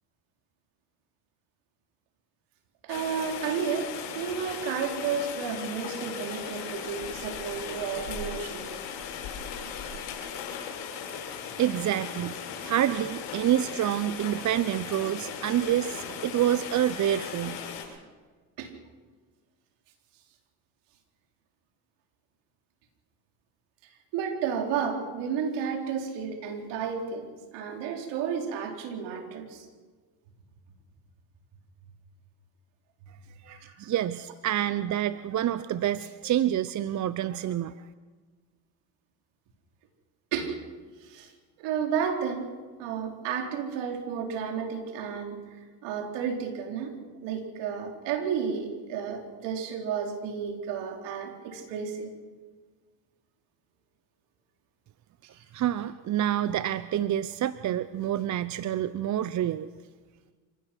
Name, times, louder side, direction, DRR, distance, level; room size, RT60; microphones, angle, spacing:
voice 1, 2.8-8.7 18.6-18.7 24.1-29.7 33.5-33.7 40.3-40.6 41.0-41.3 41.6-42.5 42.8-45.4 45.8-47.0 47.2-52.1 55.3-55.4, right 7 dB, 70° right, 3 dB, 4.0 m, -32 dB
Rain, 2.9-17.8, left 7 dB, 65° left, 7.6 m, -38 dB
voice 2, 11.6-17.6 33.4-37.7 55.5-59.7, right 11 dB, 40° right, 15 dB, 0.8 m, -27 dB
27.0 x 16.0 x 6.2 m, 1.4 s
hypercardioid pair, 75°, 44 cm